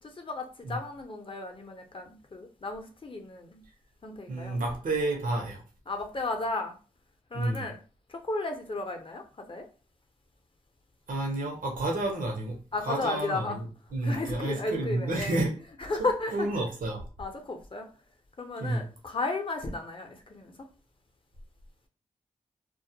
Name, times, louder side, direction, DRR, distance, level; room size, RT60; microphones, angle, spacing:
voice 1, 0.0-3.6 4.0-4.6 5.9-6.7 7.3-7.8 8.1-9.7 12.7-13.6 14.0-15.5 15.8-16.7 17.2-17.9 18.4-20.7, left 2 dB, 40° left, 0.6 m, -34 dB
voice 2, 4.3-5.6 7.3-7.6 11.1-12.6 12.9-13.6 13.9-15.5 16.3-17.0 18.6-18.8, right 2 dB, 80° right, 0.7 m, -30 dB
2.3 x 2.1 x 2.7 m
cardioid pair, 50°, 14 cm